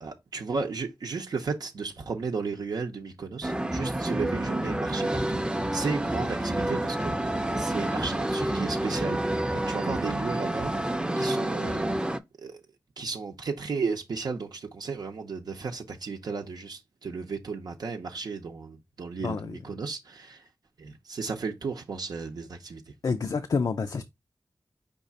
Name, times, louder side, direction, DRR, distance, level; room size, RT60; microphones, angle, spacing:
voice 1, 0.0-10.7 11.2-11.9 12.4-12.6 13.0-20.4 20.8-22.9, right 4 dB, 80° right, 0.7 m, -34 dB
sound 1, 3.4-12.2, right 1 dB, 15° right, 0.5 m, -28 dB
voice 2, 19.2-19.6 23.0-24.0, left 5 dB, 70° left, 0.4 m, -28 dB
5.2 x 2.4 x 4.0 m
cardioid pair, 45°, 7 cm